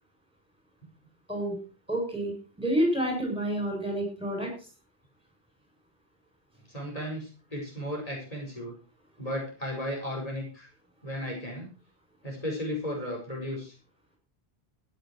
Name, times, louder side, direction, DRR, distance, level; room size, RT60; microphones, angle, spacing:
voice 1, 1.9-4.5, right 1 dB, 5° right, 1 dB, 7.5 m, -29 dB
voice 2, 6.7-8.8 9.2-10.7 11.0-11.7 12.2-13.7, equal, 35° left, -1 dB, 5.5 m, -35 dB
16.0 x 10.5 x 4.6 m, 0.34 s
omnidirectional pair, 1.0 m